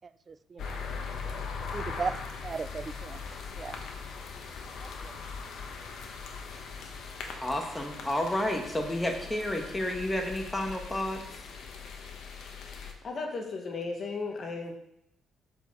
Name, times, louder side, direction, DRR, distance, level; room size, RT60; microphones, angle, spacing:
voice 1, 0.3-0.8 1.7-3.2 3.6-3.8 4.8-5.1, right 5 dB, 40° right, 15 dB, 0.3 m, -37 dB
sound 1, 0.6-12.9, left 5 dB, 75° left, 1.1 m, -40 dB
voice 2, 7.4-11.2, left 1 dB, 10° left, 3 dB, 1.3 m, -31 dB
voice 3, 13.0-14.7, left 3 dB, 50° left, 3 dB, 1.4 m, -35 dB
6.7 x 4.9 x 4.7 m, 0.77 s
cardioid pair, 90°, 0 cm